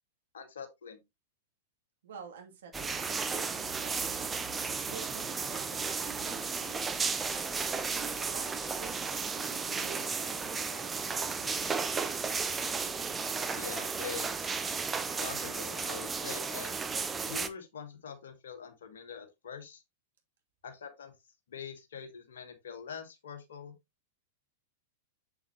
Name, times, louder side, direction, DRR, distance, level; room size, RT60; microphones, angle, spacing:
voice 1, 0.3-1.0 13.5-14.6 15.2-16.8 17.3-19.8 20.6-21.1 21.5-23.7, left 7 dB, 65° left, 2.1 m, -44 dB
voice 2, 2.0-4.3 4.7-11.5, right 6 dB, 60° right, 2.7 m, -50 dB
sound 1, 2.7-17.5, right 5 dB, 15° right, 1.0 m, -34 dB
7.7 x 7.0 x 2.9 m
figure-of-eight pair, 95°, 0 cm